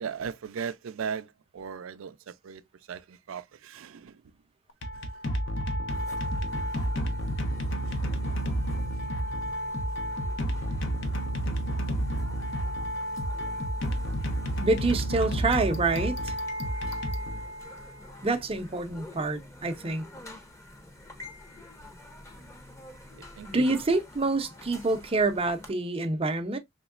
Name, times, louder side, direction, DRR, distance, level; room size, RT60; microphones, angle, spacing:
voice 1, 0.0-4.2 4.9-5.0 23.4-23.8, right 6 dB, 75° right, 0.4 m, -37 dB
sound 1, 4.7-17.9, equal, 60° left, 0.7 m, -30 dB
sound 2, 5.9-25.7, left 1 dB, 15° left, 0.7 m, -48 dB
voice 2, 14.6-16.3 18.2-20.1 23.5-26.6, right 3 dB, 30° right, 0.6 m, -27 dB
3.6 x 3.0 x 2.4 m
head